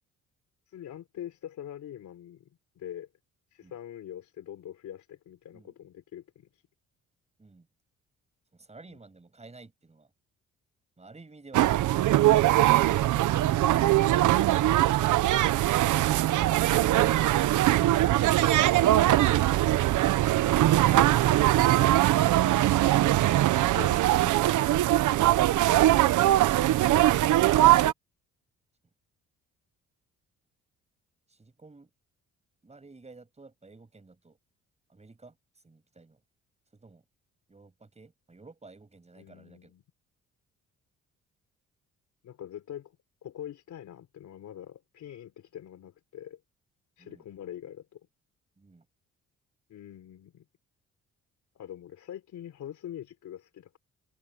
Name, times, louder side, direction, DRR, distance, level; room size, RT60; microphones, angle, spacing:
voice 1, 0.7-2.5 2.8-3.1 3.5-6.6 8.9-9.0 13.3-13.7 22.5-22.8 23.6-25.1 39.2-39.8 42.2-43.0 43.2-46.4 47.0-48.0 49.7-50.5 51.5-53.8, left 10 dB, 70° left, 4.0 m, -44 dB
voice 2, 8.5-10.1 11.0-12.8 31.3-31.9 32.6-34.4 34.9-36.2 36.7-37.0 37.5-39.7 47.0-47.2 48.6-48.9, right 3 dB, 20° right, 7.4 m, -53 dB
sound 1, 11.5-27.9, right 14 dB, 80° right, 1.0 m, -22 dB
cardioid pair, 90°, 30 cm